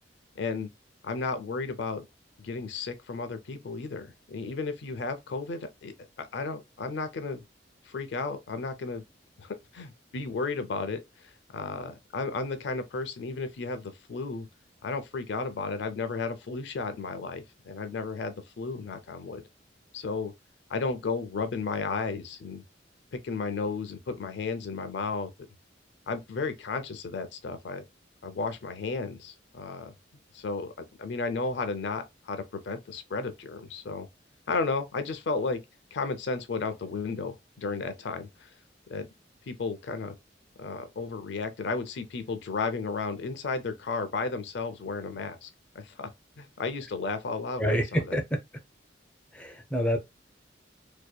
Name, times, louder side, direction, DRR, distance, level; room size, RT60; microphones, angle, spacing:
voice 1, 0.4-0.7 1.0-2.1 2.4-7.4 7.9-9.0 9.4-14.5 14.8-19.4 19.9-20.3 20.7-22.6 23.1-25.3 26.1-27.8 28.2-29.9 30.3-30.7 31.0-34.1 34.5-35.6 35.9-38.5 38.9-39.1 39.5-40.1 40.6-45.5 45.8-46.1 46.4-48.2, left 4 dB, 70° left, 0.4 m, -33 dB
voice 2, 47.6-48.2 49.3-50.0, equal, 5° left, 0.4 m, -27 dB
2.7 x 2.1 x 2.2 m
head